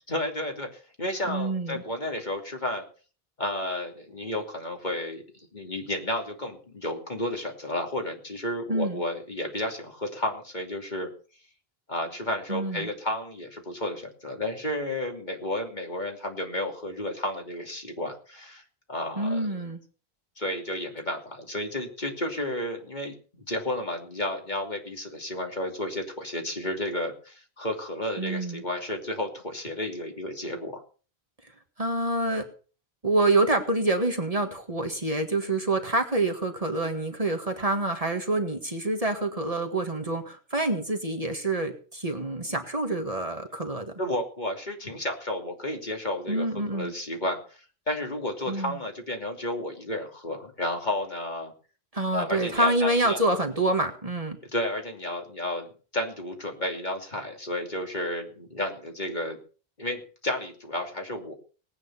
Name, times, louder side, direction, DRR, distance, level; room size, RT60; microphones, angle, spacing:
voice 1, 0.1-2.8 3.4-11.1 11.9-18.6 18.9-19.6 20.4-30.8 44.0-51.5 52.1-53.2 54.4-55.7 55.9-59.4 59.8-61.3, left 1 dB, 45° left, 3 dB, 3.0 m, -32 dB
voice 2, 1.3-1.8 8.7-9.0 12.5-12.9 19.2-19.8 28.2-28.6 31.8-32.5 33.0-43.9 46.3-46.9 48.5-48.8 51.9-54.4, right 2 dB, 35° right, 4 dB, 1.9 m, -27 dB
19.0 x 9.1 x 5.7 m, 0.39 s
omnidirectional pair, 1.0 m